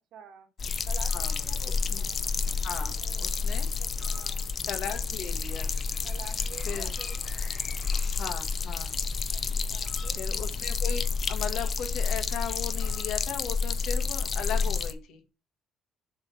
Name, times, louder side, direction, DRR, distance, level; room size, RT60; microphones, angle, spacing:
voice 1, 0.1-0.5 0.9-2.2 2.9-4.4 6.0-7.5 9.3-10.2, right 6 dB, 65° right, 5 dB, 1.5 m, -49 dB
sound 1, 0.6-14.9, left 5 dB, 30° left, 0.6 m, -30 dB
voice 2, 2.6-3.7 4.7-5.8 6.7-6.9 8.1-8.9 10.2-11.0 11.3-15.2, left 8 dB, 65° left, 6 dB, 1.4 m, -37 dB
7.3 x 3.2 x 6.2 m, 0.30 s
cardioid pair, 175°, 0 cm